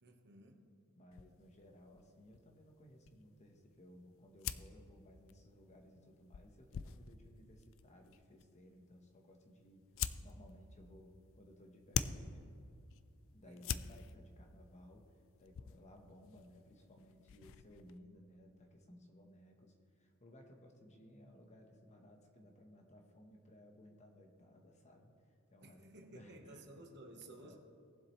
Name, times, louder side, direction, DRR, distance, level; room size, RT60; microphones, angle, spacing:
voice 1, 0.0-0.6 13.4-13.9 25.6-27.6, right 2 dB, 50° right, 3 dB, 1.2 m, -56 dB
voice 2, 1.0-9.9 10.2-12.5 13.3-15.1 15.4-25.8 26.1-26.9 27.4-27.6, left 1 dB, 30° left, 3 dB, 1.1 m, -60 dB
sound 1, 1.1-18.0, left 8 dB, 65° left, 0.4 m, -47 dB
18.5 x 7.5 x 3.2 m, 2.4 s
head